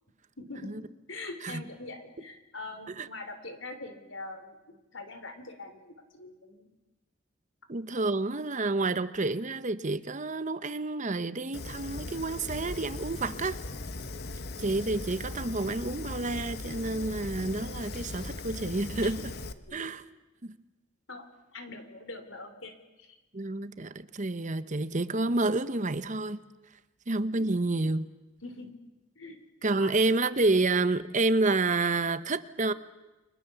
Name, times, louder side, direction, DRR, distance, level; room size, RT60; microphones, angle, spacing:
voice 1, 0.4-6.7 19.7-19.9 21.1-21.3 21.5-23.2 27.4-27.5 28.4-28.8 29.1-29.4 29.8-30.0, left 2 dB, 70° left, 8 dB, 3.4 m, -43 dB
voice 2, 7.7-13.6 14.6-19.3 19.7-20.0 20.4-20.6 23.3-26.4 27.1-28.1 29.6-32.7, right 2 dB, 40° right, 13 dB, 1.0 m, -29 dB
Fire, 11.5-19.5, left 2 dB, 55° left, 1.2 m, -39 dB
30.0 x 23.5 x 7.1 m, 1.1 s
head